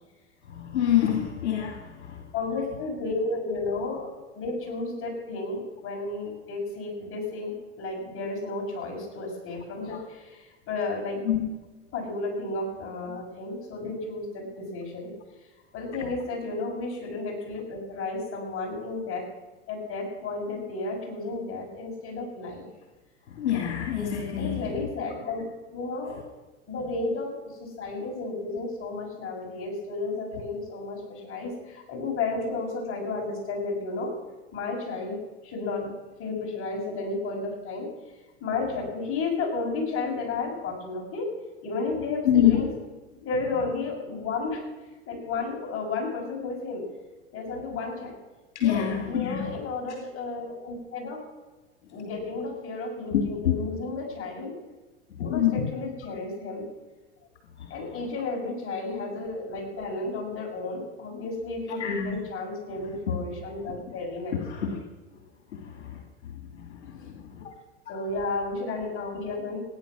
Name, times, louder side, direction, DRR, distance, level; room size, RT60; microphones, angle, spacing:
voice 1, 0.5-2.2 9.9-10.0 11.3-11.4 23.3-24.7 42.2-42.6 48.5-49.6 53.1-53.5 55.2-55.7 57.6-57.7 61.8-62.2 63.1-63.2 64.4-64.8 65.5-66.0 66.5-67.5 67.9-68.0, left 10 dB, 75° left, 2 dB, 2.5 m, -26 dB
voice 2, 2.3-11.2 11.9-15.1 15.7-19.3 19.7-22.7 24.4-25.4 25.7-26.2 26.7-34.1 34.5-35.2 35.4-35.9 36.2-37.9 38.4-41.3 41.6-42.7 43.1-44.6 45.0-46.8 47.3-48.2 48.6-51.2 51.9-54.6 55.2-56.6 57.7-64.7 67.0-67.1 67.9-69.6, left 3 dB, 40° left, -1 dB, 6.5 m, -32 dB
17.0 x 10.0 x 6.2 m, 1.2 s
hypercardioid pair, 95°, 34 cm